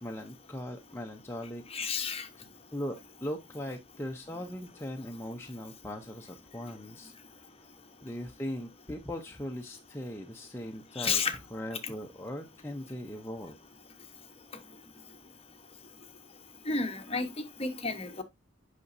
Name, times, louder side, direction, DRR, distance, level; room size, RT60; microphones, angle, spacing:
voice 1, 0.0-1.6 2.7-7.5 8.0-11.2 11.5-13.6, left 1 dB, 10° left, 0.7 m, -39 dB
voice 2, 1.7-2.3 11.0-11.4 16.7-17.3 17.6-18.2, left 4 dB, 30° left, 1.1 m, -31 dB
8.3 x 5.9 x 2.6 m
head